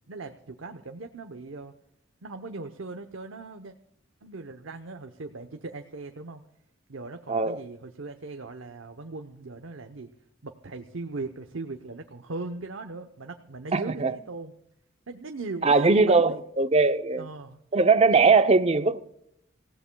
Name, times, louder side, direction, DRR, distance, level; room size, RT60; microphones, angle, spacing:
voice 1, 0.1-1.7 2.2-3.7 4.2-6.4 6.9-10.1 10.4-14.5 15.1-16.4 17.2-17.6 18.2-18.6, right 3 dB, 90° right, 0.9 m, -39 dB
voice 2, 7.3-7.6 13.7-14.1 15.6-17.3 17.7-19.0, right 4 dB, 35° right, 0.6 m, -20 dB
26.5 x 16.0 x 2.3 m
head